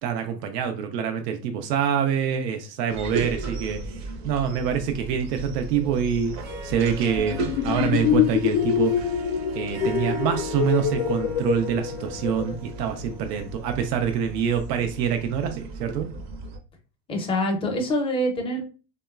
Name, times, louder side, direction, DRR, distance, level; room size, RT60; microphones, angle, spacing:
voice 1, 0.0-6.3 6.6-9.2 9.5-16.1, right 8 dB, 85° right, 6 dB, 0.6 m, -26 dB
sound 1, 2.9-16.6, right 3 dB, 35° right, 0.5 m, -37 dB
Harp, 6.3-14.9, left 1 dB, 60° right, 1.0 m, -38 dB
sound 2, 7.2-12.6, left 10 dB, 65° left, 0.5 m, -25 dB
voice 2, 17.1-18.6, equal, 15° left, 2 dB, 0.4 m, -25 dB
2.9 x 2.2 x 2.2 m, 0.34 s
supercardioid pair, 115°, 47 cm